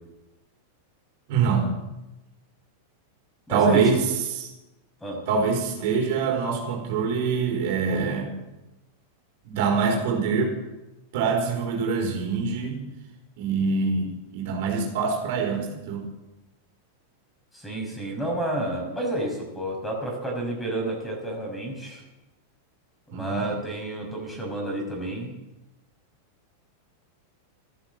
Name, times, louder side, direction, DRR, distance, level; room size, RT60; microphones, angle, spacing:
voice 1, 1.3-1.7 3.5-4.5 5.3-8.4 9.4-10.6 11.1-12.8 13.4-16.0 23.1-23.5, right 5 dB, 60° right, 1 dB, 4.8 m, -24 dB
voice 2, 3.5-3.8 5.0-5.2 17.5-22.0 23.1-25.3, right 1 dB, 10° left, 1 dB, 5.9 m, -30 dB
15.0 x 11.5 x 7.8 m, 0.99 s
supercardioid pair, 130°, 0 cm